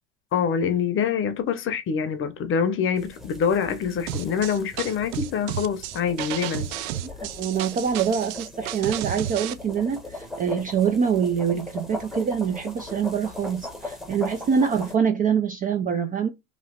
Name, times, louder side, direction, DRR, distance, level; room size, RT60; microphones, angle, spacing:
voice 1, 0.3-6.7, left 7 dB, 30° left, 0.7 m, -25 dB
sound 1, 3.0-15.0, left 2 dB, ahead, 0.8 m, -39 dB
sound 2, 4.1-9.5, right 12 dB, 65° right, 0.6 m, -32 dB
voice 2, 7.0-16.3, right 7 dB, 20° right, 0.3 m, -25 dB
3.1 x 2.7 x 4.2 m
supercardioid pair, 110°, 41 cm